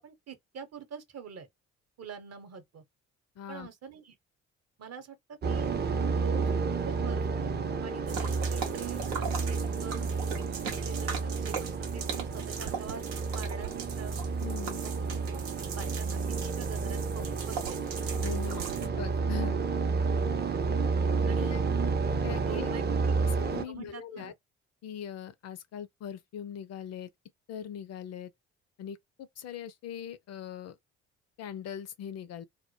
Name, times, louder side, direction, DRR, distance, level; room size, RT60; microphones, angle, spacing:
voice 1, 0.0-1.5 2.0-2.8 3.5-4.1 4.8-5.2 5.5-5.7 6.1-10.1 10.8-14.2 14.8-15.0 15.3-15.5 15.7-16.2 16.5-18.0 21.3-21.6 22.4-23.1 23.7-24.3, right 7 dB, 45° right, 0.9 m, -45 dB
voice 2, 3.4-3.7 14.4-14.8 18.2-19.6 21.4-21.6 22.2-22.7 23.2-24.3 24.8-27.1 27.5-28.3 28.8-30.8 31.4-32.4, left 9 dB, 45° left, 0.4 m, -41 dB
sound 1, 5.4-23.6, right 4 dB, 30° right, 0.5 m, -30 dB
sound 2, 8.1-18.9, right 6 dB, 85° right, 0.7 m, -39 dB
2.1 x 2.1 x 3.0 m
hypercardioid pair, 50°, 36 cm